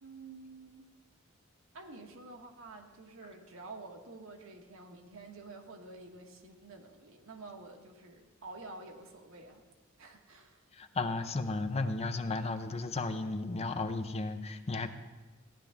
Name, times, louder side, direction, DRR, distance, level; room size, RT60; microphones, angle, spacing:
voice 1, 0.0-0.9 1.7-9.6 10.0-10.6, right 3 dB, 70° right, 3 dB, 1.3 m, -49 dB
voice 2, 10.7-14.9, left 3 dB, 30° left, 8 dB, 0.6 m, -34 dB
15.0 x 10.5 x 3.5 m, 1.2 s
head